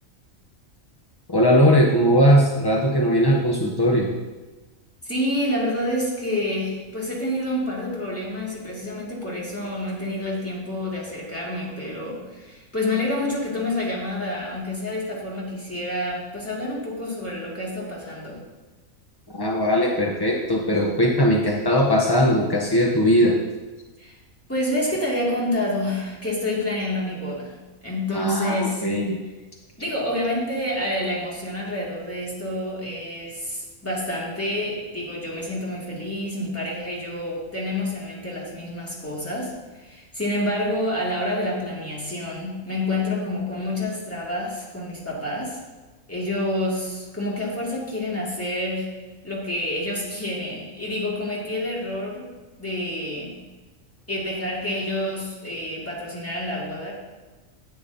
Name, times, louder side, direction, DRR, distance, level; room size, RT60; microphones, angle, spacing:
voice 1, 1.3-4.1 19.3-23.4 28.1-29.2, equal, 30° left, -1 dB, 0.4 m, -19 dB
voice 2, 5.0-18.4 24.0-24.1 24.5-27.5 27.8-28.9 29.8-45.6 46.1-48.9 49.2-52.3 52.6-53.3 54.1-56.9, left 1 dB, 10° left, -5 dB, 2.1 m, -28 dB
9.9 x 9.0 x 2.7 m, 1.2 s
omnidirectional pair, 1.4 m